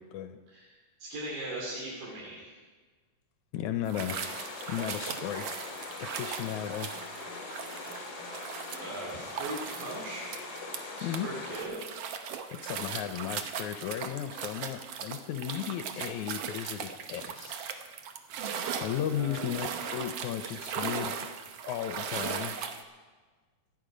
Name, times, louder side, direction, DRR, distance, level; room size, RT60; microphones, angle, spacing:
voice 1, 0.0-0.4 3.5-4.2 4.7-5.5 6.0-6.9 11.0-11.3 12.5-17.8 18.7-21.2 21.7-22.6, left 10 dB, 75° left, 9 dB, 1.9 m, -35 dB
voice 2, 0.5-2.5 8.8-10.3 11.0-11.7 19.1-19.5, right 1 dB, 90° right, -4 dB, 4.5 m, -39 dB
sound 1, 3.9-11.2 11.5-22.8, right 7 dB, 70° right, 1.5 m, -38 dB
sound 2, 4.1-11.6, left 2 dB, 35° left, 2.6 m, -42 dB
sound 3, 6.4-11.3, right 1 dB, 40° right, 4.9 m, -57 dB
26.0 x 9.0 x 5.1 m, 1.4 s
omnidirectional pair, 3.8 m